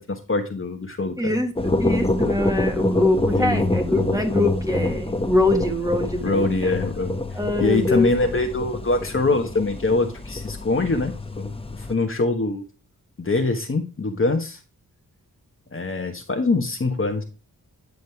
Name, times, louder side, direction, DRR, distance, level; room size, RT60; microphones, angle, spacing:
voice 1, 0.0-1.3 3.3-3.7 6.2-12.6 13.2-14.6 15.7-17.2, left 3 dB, 35° left, 4 dB, 1.3 m, -24 dB
voice 2, 1.2-6.7 7.3-8.1, left 2 dB, 10° right, 3 dB, 1.6 m, -23 dB
sound 1, 1.6-11.9, left 1 dB, 15° left, 1.0 m, -26 dB
9.5 x 5.1 x 3.5 m, 0.33 s
wide cardioid pair, 85°, 35 cm